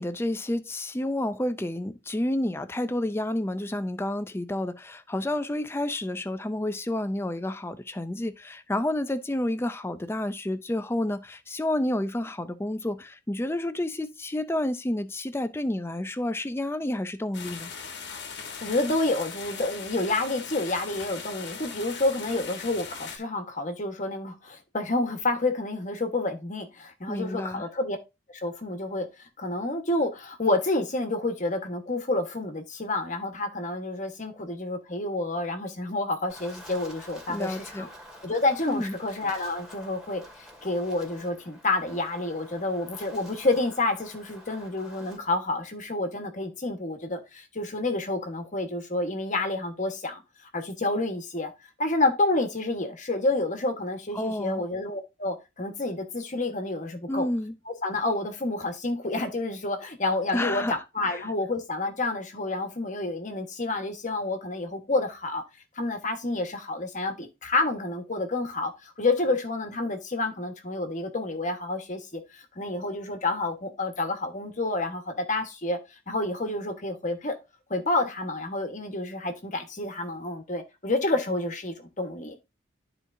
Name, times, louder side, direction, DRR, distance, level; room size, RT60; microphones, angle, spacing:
voice 1, 0.0-17.7 27.1-27.6 37.3-37.9 38.7-38.9 54.1-54.6 57.1-57.5 60.3-60.7 61.1-61.2, left 1 dB, 10° left, 0.5 m, -30 dB
sound 1, 17.3-23.2, left 6 dB, 60° left, 1.3 m, -39 dB
voice 2, 18.5-28.0 28.4-29.1 29.4-37.9 38.2-50.2 50.5-51.5 51.8-57.3 57.7-65.4 65.8-75.8 76.1-77.4 77.7-82.4, left 2 dB, 40° left, 1.3 m, -29 dB
Wind, 36.3-45.2, equal, 5° right, 2.0 m, -48 dB
12.5 x 4.4 x 2.7 m
head